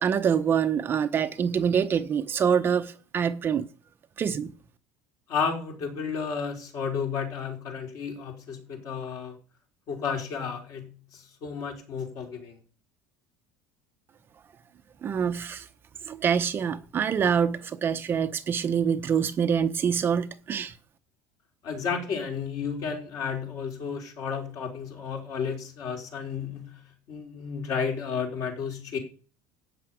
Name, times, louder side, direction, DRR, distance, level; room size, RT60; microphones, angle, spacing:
voice 1, 0.0-3.6 4.2-4.5 15.0-15.7 16.1-20.7, right 7 dB, 25° right, 0.8 m, -25 dB
voice 2, 5.3-9.3 9.9-12.6 21.6-26.8 27.1-29.0, left 6 dB, 45° left, 4.0 m, -32 dB
13.0 x 5.8 x 9.2 m
cardioid pair, 155°, 8 cm